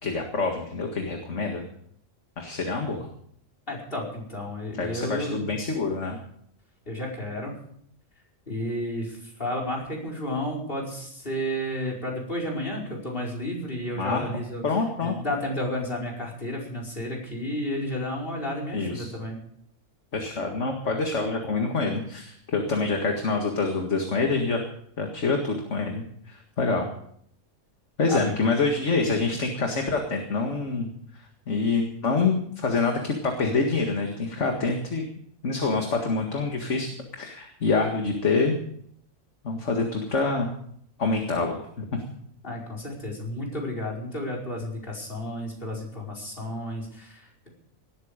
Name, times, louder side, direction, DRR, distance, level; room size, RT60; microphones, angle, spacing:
voice 1, 0.0-1.6 2.4-3.1 4.7-6.2 14.0-15.2 18.7-19.1 20.1-24.6 25.0-26.0 26.3-26.9 28.0-30.9 31.5-35.0 35.4-36.9 37.2-38.6 39.4-40.5 41.0-42.0, left 3 dB, 60° left, 3 dB, 2.2 m, -26 dB
voice 2, 3.7-5.4 6.9-7.5 8.5-14.6 15.0-19.4 28.1-28.5 42.4-47.5, left 1 dB, 40° left, 0 dB, 5.1 m, -32 dB
18.5 x 13.0 x 5.1 m, 0.65 s
omnidirectional pair, 1.4 m